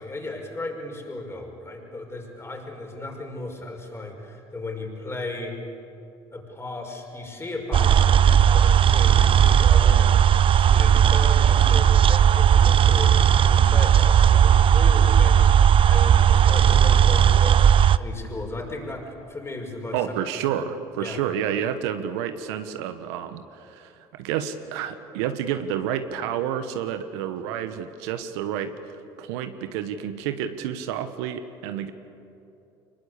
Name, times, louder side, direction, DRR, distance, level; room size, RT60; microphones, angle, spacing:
voice 1, 0.0-5.6 6.3-17.6 18.0-20.0 21.0-21.2, left 2 dB, 20° left, 1 dB, 5.5 m, -35 dB
sound 1, 7.7-18.0, right 9 dB, 40° right, 0.6 m, -16 dB
voice 2, 19.9-31.9, right 9 dB, 85° right, 9 dB, 1.2 m, -30 dB
24.0 x 21.0 x 8.3 m, 2.8 s
supercardioid pair, 75°, 13 cm